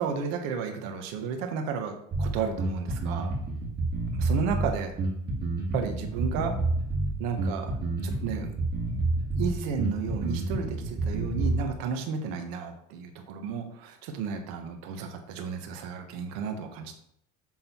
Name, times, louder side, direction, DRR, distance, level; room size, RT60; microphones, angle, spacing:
voice 1, 0.0-3.3 4.1-4.9 5.7-6.5 7.2-7.8 8.0-8.5 9.3-16.9, right 6 dB, 75° right, 4 dB, 1.3 m, -33 dB
Bass guitar, 2.1-11.7, right 2 dB, 25° right, 2.0 m, -29 dB
7.5 x 3.9 x 4.4 m, 0.72 s
cardioid pair, 130°, 35 cm